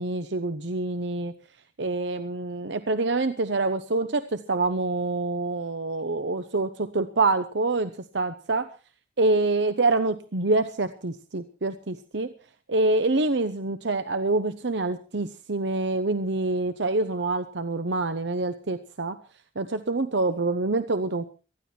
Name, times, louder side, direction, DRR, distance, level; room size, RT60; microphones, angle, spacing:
voice 1, 0.0-1.3 1.8-8.7 9.2-12.3 12.7-19.2 19.6-21.3, right 2 dB, 75° right, 10 dB, 1.0 m, -26 dB
19.0 x 14.0 x 4.4 m, 0.35 s
head